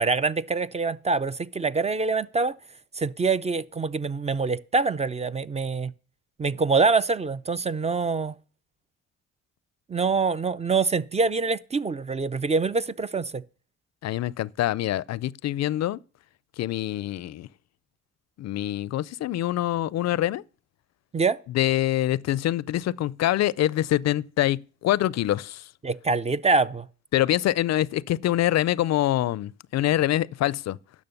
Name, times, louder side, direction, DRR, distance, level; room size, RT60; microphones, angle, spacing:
voice 1, 0.0-2.5 3.0-5.9 6.4-8.3 9.9-13.4 21.1-21.4 25.8-26.9, right 4 dB, 20° right, 0.4 m, -25 dB
voice 2, 14.0-16.0 16.6-17.5 18.4-20.4 21.5-25.6 27.1-30.8, left 13 dB, 60° left, 0.4 m, -25 dB
10.5 x 6.3 x 6.8 m
cardioid pair, 90°, 30 cm